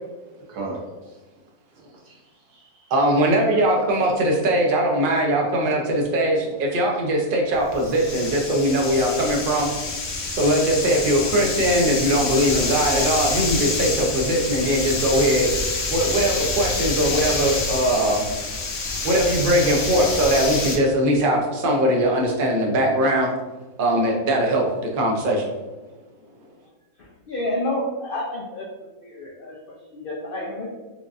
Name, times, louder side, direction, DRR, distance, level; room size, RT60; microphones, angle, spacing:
voice 1, 0.2-1.2 1.7-2.2 2.5-2.9 4.0-4.1 10.8-10.9, right 3 dB, 85° right, -3 dB, 1.5 m, -37 dB
voice 2, 2.9-9.7 10.3-15.5 15.9-18.3 19.0-23.3 23.8-24.7 24.9-25.5, right 1 dB, 55° right, 0 dB, 0.6 m, -20 dB
sound 1, 7.5-20.8, left 3 dB, 60° left, 0.8 m, -27 dB
voice 3, 27.0-28.7 29.0-30.7, left 1 dB, 85° left, -3 dB, 0.4 m, -30 dB
4.6 x 2.5 x 2.4 m, 1.2 s
omnidirectional pair, 1.6 m